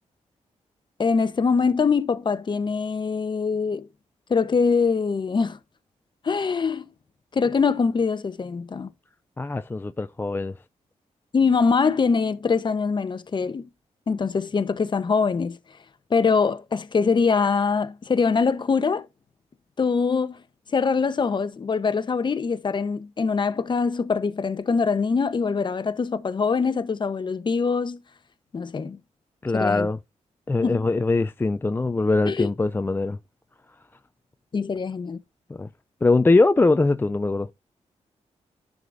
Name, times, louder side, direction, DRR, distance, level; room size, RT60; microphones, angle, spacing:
voice 1, 1.0-3.9 4.3-5.6 6.2-6.9 7.3-8.9 11.3-13.7 14.1-15.6 16.1-19.1 19.8-20.4 20.7-28.0 28.5-29.0 29.5-29.9 30.6-30.9 32.3-32.5 34.5-35.2, left 5 dB, 40° left, 0.9 m, -23 dB
voice 2, 9.4-10.5 29.4-30.0 30.5-33.2 35.5-35.7 36.0-37.5, left 3 dB, 15° left, 0.4 m, -22 dB
11.0 x 4.9 x 2.6 m
wide cardioid pair, 115°, 12 cm